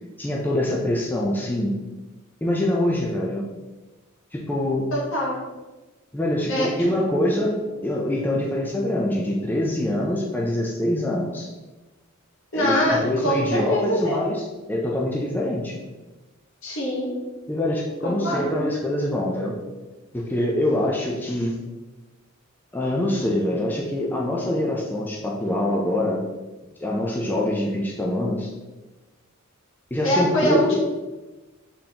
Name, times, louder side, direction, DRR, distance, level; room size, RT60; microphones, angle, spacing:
voice 1, 0.2-1.7 2.4-3.4 4.3-4.9 6.1-11.5 12.5-15.8 17.5-19.5 20.1-21.6 22.7-26.2 26.8-28.5 29.9-30.7, left 1 dB, 10° left, -3 dB, 0.4 m, -24 dB
voice 2, 4.9-5.3 6.5-6.7 12.5-14.2 16.6-17.1 18.0-18.5 30.0-30.7, equal, 65° left, -3 dB, 1.1 m, -23 dB
3.9 x 3.6 x 2.8 m, 1.2 s
head